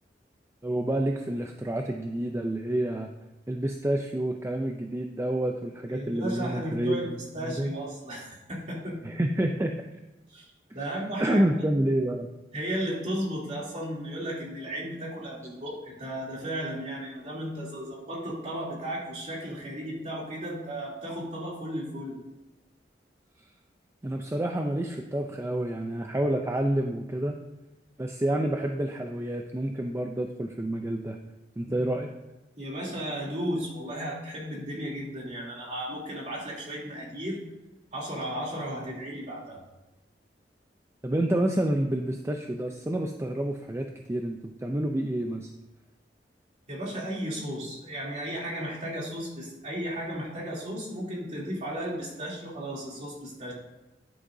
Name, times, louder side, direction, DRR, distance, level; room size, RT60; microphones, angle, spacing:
voice 1, 0.6-3.1 3.5-7.1 7.4-7.7 9.0-9.7 11.2-12.3 24.0-27.4 28.0-31.2 31.6-32.1 41.0-45.5, right 1 dB, 15° right, 4 dB, 0.4 m, -28 dB
voice 2, 5.9-9.0 10.3-11.5 12.5-22.2 31.6-31.8 32.6-37.4 37.9-39.6 46.7-53.5, equal, 40° right, -5 dB, 3.1 m, -34 dB
10.5 x 9.9 x 2.7 m, 0.99 s
head